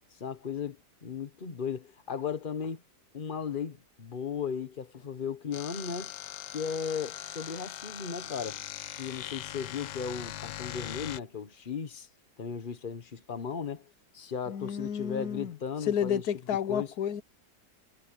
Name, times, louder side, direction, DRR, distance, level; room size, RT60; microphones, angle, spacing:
voice 1, 0.2-2.8 3.1-6.1 6.5-8.6 9.0-12.1 12.4-16.2 16.7-16.9, left 6 dB, 30° left, 1.3 m, -36 dB
sound 1, 5.5-11.2, left 12 dB, 90° left, 1.4 m, -40 dB
voice 2, 14.5-15.6 15.9-17.2, left 8 dB, 65° left, 1.2 m, -31 dB
omnidirectional pair, 1.9 m